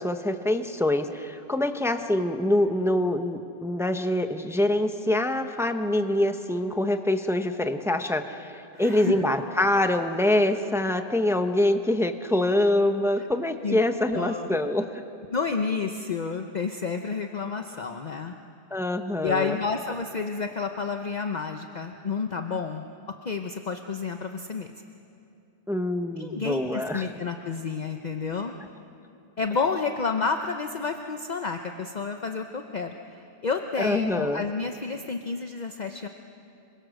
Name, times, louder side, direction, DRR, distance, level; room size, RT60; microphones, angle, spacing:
voice 1, 0.0-14.9 18.7-19.6 25.7-27.1 33.8-34.4, left 1 dB, 5° right, 7 dB, 0.8 m, -25 dB
voice 2, 8.7-9.2 13.2-13.3 13.6-13.8 14.1-14.5 15.3-18.4 19.2-22.9 23.2-24.7 26.2-28.6 29.4-36.1, left 5 dB, 45° left, 5 dB, 0.9 m, -30 dB
26.0 x 23.5 x 6.5 m, 2.6 s
omnidirectional pair, 1.1 m